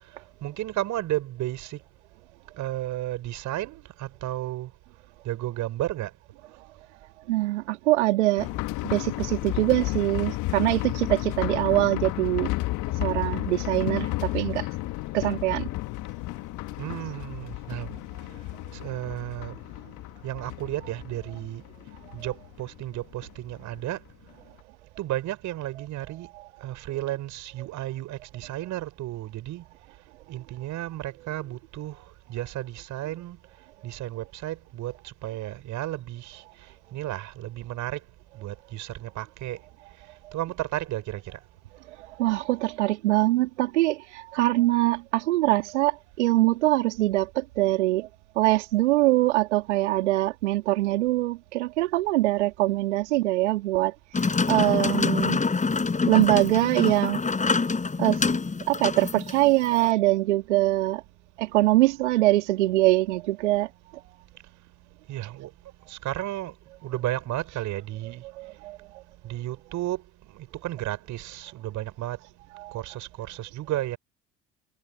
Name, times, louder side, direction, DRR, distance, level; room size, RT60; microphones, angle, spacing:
voice 1, 0.4-1.8 2.6-4.7 5.2-6.1 16.8-18.0 18.7-19.6 20.2-21.6 22.1-24.0 25.0-26.3 26.6-29.6 30.3-32.0 32.3-33.4 33.8-36.4 36.9-38.0 38.3-39.6 40.3-41.4 65.1-65.5 65.9-66.5 66.8-68.2 69.2-70.0 70.3-72.2 72.7-74.0, right 15 dB, 55° right, 5.7 m, -33 dB
voice 2, 7.3-8.5 8.8-12.5 12.9-14.7 15.1-15.7 18.1-18.3 40.2-40.3 42.0-48.1 48.4-55.4 56.0-57.2 57.6-57.7 58.0-58.2 58.7-61.0 61.4-63.7 68.4-69.0 72.5-72.8, right 18 dB, 75° right, 2.6 m, -23 dB
sound 1, 8.4-23.9 24.1-24.2 24.6-24.7, left 19 dB, 55° left, 1.5 m, -32 dB
sound 2, 54.1-59.9, left 4 dB, 20° left, 4.4 m, -26 dB
hypercardioid pair, 65°, 35 cm